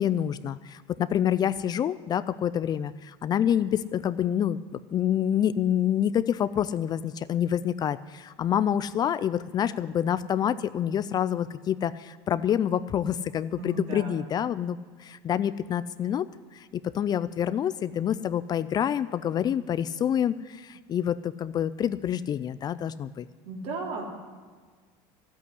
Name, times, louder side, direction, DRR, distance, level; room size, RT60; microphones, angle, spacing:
voice 1, 0.0-4.6 4.9-16.3 16.5-16.7 16.9-23.3, left 9 dB, 35° left, 15 dB, 0.4 m, -27 dB
voice 2, 13.5-14.1 23.5-24.0, right 3 dB, 60° right, 0 dB, 3.6 m, -35 dB
12.5 x 8.4 x 9.8 m, 1.5 s
supercardioid pair, 115°, 12 cm